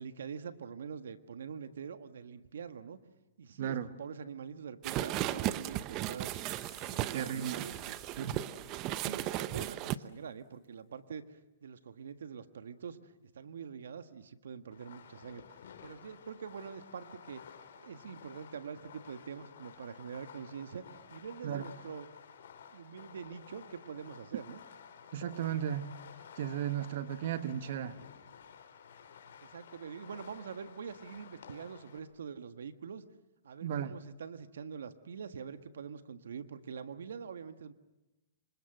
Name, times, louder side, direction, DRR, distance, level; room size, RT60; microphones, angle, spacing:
voice 1, 0.0-3.0 3.4-6.3 6.8-7.9 8.7-11.2 11.6-15.4 15.8-17.4 17.8-22.1 22.7-24.6 29.4-33.0 33.4-37.7, right 6 dB, 80° right, 11 dB, 1.6 m, -45 dB
voice 2, 3.6-3.9 7.1-7.6 8.2-8.3 21.4-21.6 25.1-25.9 26.4-28.0 33.6-34.0, right 9 dB, 55° right, 12 dB, 1.4 m, -35 dB
sound 1, 4.8-10.0, right 14 dB, 30° right, 0.9 m, -36 dB
sound 2, 6.3-10.0 10.6-10.7, right 2 dB, 15° right, 7.1 m, -56 dB
Fireworks, 14.7-32.0, left 7 dB, 70° left, 3.5 m, -53 dB
27.0 x 26.0 x 7.9 m, 1.0 s
hypercardioid pair, 145°, 0 cm